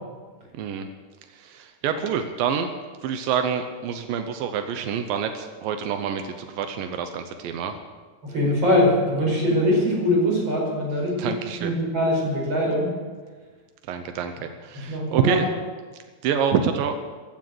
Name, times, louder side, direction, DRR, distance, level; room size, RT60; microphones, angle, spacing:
voice 1, 0.5-0.9 1.3-2.7 3.0-7.8 11.2-11.7 13.9-14.3 14.6-15.5 16.2-16.9, right 7 dB, 85° right, 7 dB, 2.0 m, -26 dB
voice 2, 8.2-11.3 11.6-12.9 14.9-15.4, left 1 dB, 25° right, -2 dB, 5.2 m, -22 dB
15.0 x 9.5 x 7.8 m, 1.4 s
omnidirectional pair, 5.2 m